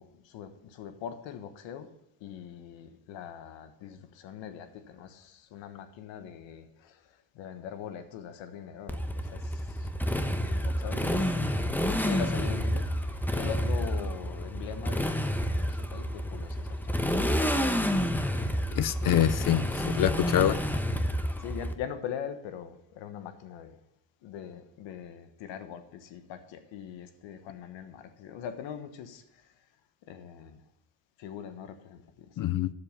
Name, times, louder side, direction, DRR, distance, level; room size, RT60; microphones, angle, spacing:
voice 1, 0.0-1.9 2.2-17.3 19.0-19.3 20.2-20.6 21.4-23.8 24.2-29.5 30.0-30.6 31.2-32.4, left 8 dB, 80° left, 10 dB, 1.3 m, -42 dB
Motorcycle, 8.9-21.7, equal, 5° left, 0.9 m, -29 dB
voice 2, 18.7-20.5 32.4-32.7, left 11 dB, 50° left, 16 dB, 0.5 m, -25 dB
10.0 x 7.1 x 5.6 m, 0.80 s
cardioid pair, 100°, 44 cm